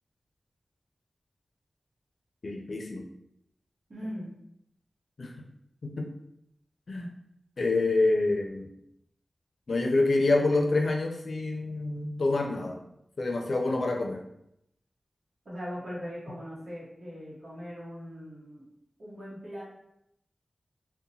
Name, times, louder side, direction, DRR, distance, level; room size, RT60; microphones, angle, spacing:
voice 1, 2.4-3.0 5.2-5.3 5.8-6.1 6.9-7.1 7.6-8.7 9.7-12.8 13.2-14.2, left 2 dB, 70° left, 1 dB, 0.4 m, -27 dB
voice 2, 3.9-4.3 15.4-18.6 19.0-19.6, equal, 65° right, -8 dB, 0.9 m, -40 dB
2.8 x 2.1 x 2.6 m, 0.78 s
wide cardioid pair, 70°, 0 cm